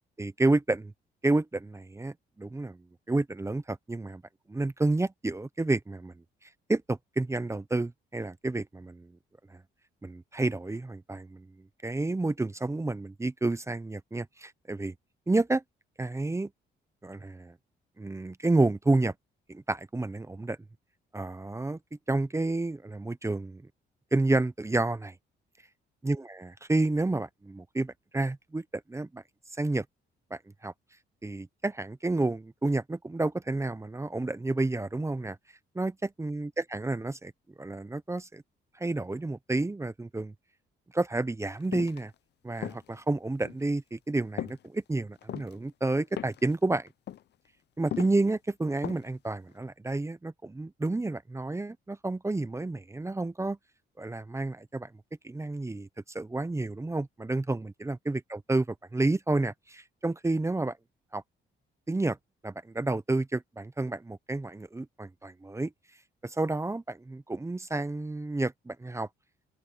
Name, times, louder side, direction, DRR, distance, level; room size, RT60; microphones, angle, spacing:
voice 1, 0.2-0.9 1.2-2.8 3.1-4.2 4.5-6.1 6.7-9.1 9.5-9.6 10.0-11.5 11.8-14.9 15.3-15.6 16.0-16.5 17.0-17.5 18.0-19.1 19.5-20.6 21.1-21.8 22.1-23.6 24.1-25.1 26.0-29.2 29.6-29.8 30.3-30.7 31.2-35.4 35.7-35.9 36.2-37.3 37.6-38.4 38.8-40.3 40.9-42.1 42.4-46.9 47.8-53.6 54.0-54.9 55.2-55.9 56.1-58.7 58.9-60.8 61.1-61.2 61.9-62.2 62.4-65.7 66.2-69.1, right 2 dB, 15° right, 0.8 m, -30 dB
sound 1, 41.7-42.0 42.6-43.0 43.4-43.6 44.4-44.7 45.1-45.6 46.2-46.5 46.9-47.2 47.9-48.2 48.8-49.2 49.5-49.6, left 11 dB, 60° left, 0.7 m, -37 dB
open air
cardioid pair, 90°, 20 cm